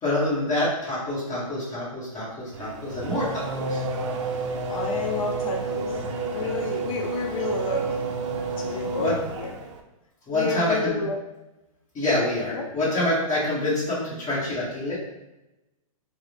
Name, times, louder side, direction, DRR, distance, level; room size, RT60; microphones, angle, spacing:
voice 1, 0.0-3.8 9.0-9.1 10.3-10.9 11.9-15.0, left 1 dB, 15° left, -8 dB, 1.1 m, -26 dB
Race car auto racing / Accelerating revving vroom, 2.5-9.8, right 3 dB, 55° right, 0.4 m, -30 dB
voice 2, 4.7-5.9 6.3-8.1 8.6-9.5 10.3-11.2 12.5-12.7, left 3 dB, 70° left, 1 dB, 0.5 m, -31 dB
3.7 x 2.0 x 3.1 m, 0.96 s
hypercardioid pair, 160°, 19 cm